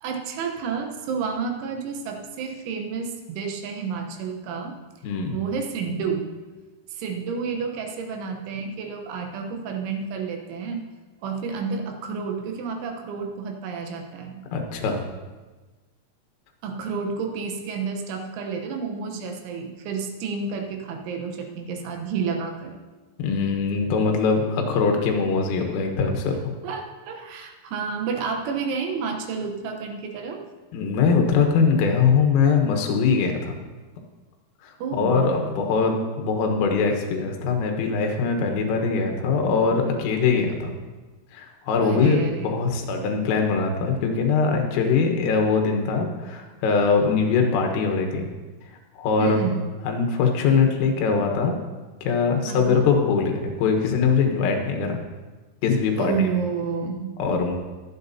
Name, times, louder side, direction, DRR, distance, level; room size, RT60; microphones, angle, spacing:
voice 1, 0.0-4.8 5.3-6.3 6.9-10.9 11.2-14.4 16.6-22.7 26.6-30.4 34.8-35.3 41.8-42.6 49.2-49.7 52.5-52.9 56.0-57.2, right 5 dB, 75° right, 3 dB, 3.3 m, -30 dB
voice 2, 5.0-5.3 14.5-15.0 23.2-26.4 30.7-33.6 34.6-34.7 35.0-40.7 41.3-48.3 49.0-49.4 49.9-51.6 52.0-55.0 55.6-56.3 57.2-57.6, left 5 dB, 85° left, 3 dB, 3.9 m, -22 dB
22.5 x 8.3 x 2.8 m, 1.3 s
omnidirectional pair, 5.7 m